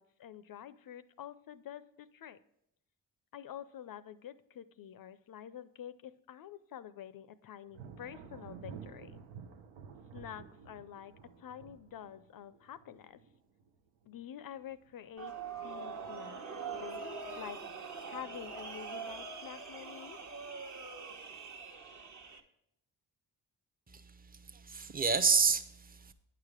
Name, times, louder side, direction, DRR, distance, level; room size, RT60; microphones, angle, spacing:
voice 1, 0.0-2.4 3.3-9.2 10.1-13.2 14.1-15.3 15.6-17.6 18.1-20.2, left 10 dB, 50° left, 15 dB, 0.5 m, -48 dB
Thunder, 7.7-14.2 14.5-15.1 15.5-16.4, right 7 dB, 85° right, 0.8 m, -51 dB
sound 1, 15.2-22.4, right 5 dB, 40° right, 1.0 m, -43 dB
voice 2, 24.3-26.1, right 5 dB, 20° right, 11 dB, 0.6 m, -29 dB
8.9 x 4.9 x 4.9 m, 0.79 s
supercardioid pair, 50°, 44 cm